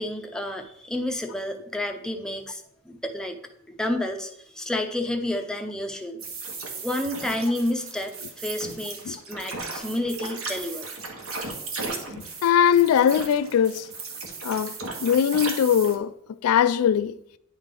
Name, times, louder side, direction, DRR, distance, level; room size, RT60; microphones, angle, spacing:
voice 1, 0.0-3.4 3.7-6.2 6.8-10.9, left 1 dB, 5° left, 0.5 m, -30 dB
sound 1, 6.2-16.0, right 3 dB, 80° right, 1.2 m, -36 dB
voice 2, 12.2-13.9 14.4-14.8 15.0-16.1 16.4-17.2, left 8 dB, 85° left, 0.3 m, -21 dB
9.6 x 3.3 x 3.7 m
head